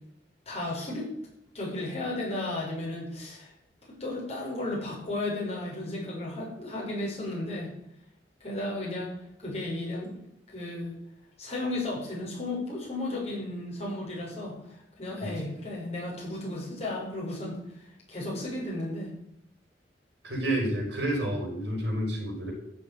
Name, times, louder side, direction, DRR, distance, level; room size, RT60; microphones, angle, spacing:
voice 1, 0.5-1.1 1.5-3.5 3.9-7.7 8.4-10.1 10.5-10.9 11.4-19.1, left 2 dB, 35° left, -4 dB, 6.9 m, -34 dB
voice 2, 20.2-22.5, right 1 dB, 75° right, 1 dB, 5.9 m, -29 dB
14.0 x 7.0 x 9.6 m, 0.79 s
head